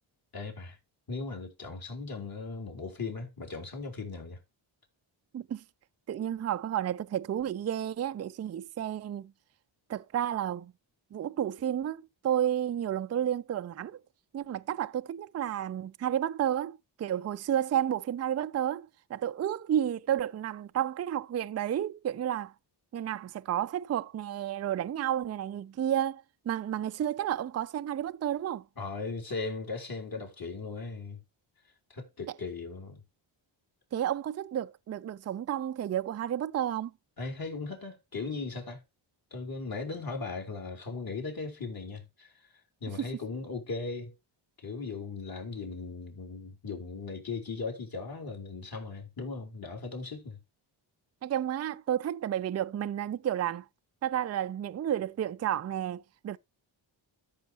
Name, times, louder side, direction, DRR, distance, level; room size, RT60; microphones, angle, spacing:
voice 1, 0.3-0.8 1.1-4.4 28.8-31.2 31.9-33.0 37.2-38.8 39.3-42.5 42.8-44.1 44.6-50.4, left 4 dB, 45° left, 3.7 m, -38 dB
voice 2, 6.1-9.3 9.9-10.7 11.1-14.0 14.3-22.5 22.9-28.6 33.9-36.9 43.0-43.1 51.2-53.7 54.0-56.4, right 10 dB, 35° right, 0.4 m, -31 dB
13.5 x 6.4 x 2.9 m
cardioid pair, 80°, 48 cm